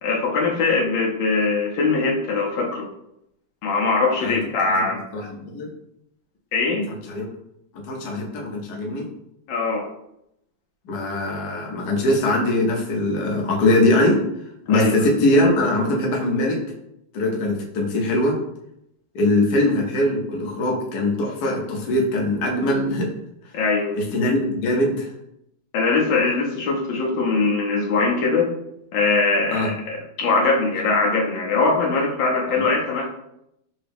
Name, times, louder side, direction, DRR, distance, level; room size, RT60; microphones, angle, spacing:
voice 1, 0.0-2.9 3.6-5.0 6.5-6.9 9.5-9.9 14.7-15.1 23.5-23.9 25.7-28.5 28.9-33.1, left 3 dB, 80° left, -1 dB, 1.4 m, -21 dB
voice 2, 5.1-5.7 7.1-7.2 7.7-9.1 10.8-14.3 14.7-16.6 17.1-18.4 19.1-23.1 23.9-25.1 29.5-29.7 32.5-32.7, left 1 dB, 60° left, -1 dB, 1.2 m, -21 dB
3.8 x 2.7 x 3.4 m, 0.80 s
omnidirectional pair, 2.2 m